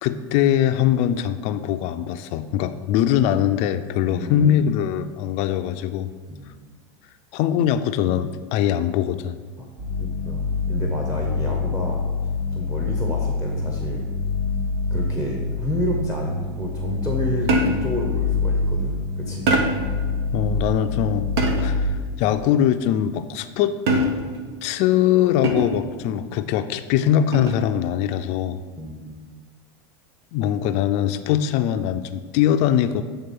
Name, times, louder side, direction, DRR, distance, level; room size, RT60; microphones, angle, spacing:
voice 1, 0.0-6.1 7.3-9.4 20.3-21.3 21.6-23.8 24.6-28.6 30.3-33.0, left 10 dB, 50° left, 10 dB, 0.4 m, -22 dB
voice 2, 4.0-4.7 6.3-6.5 9.6-9.7 10.0-12.0 12.5-14.0 14.9-19.5 28.8-29.2, equal, 15° right, -1 dB, 1.0 m, -30 dB
sound 1, 9.8-21.9, left 4 dB, 50° right, 1.5 m, -26 dB
sound 2, 17.5-18.0 19.5-20.0 21.4-21.9 23.9-24.4 25.4-25.9 27.3-27.7, right 2 dB, 75° right, 1.0 m, -22 dB
8.0 x 3.6 x 5.4 m, 1.5 s
supercardioid pair, 115°, 14 cm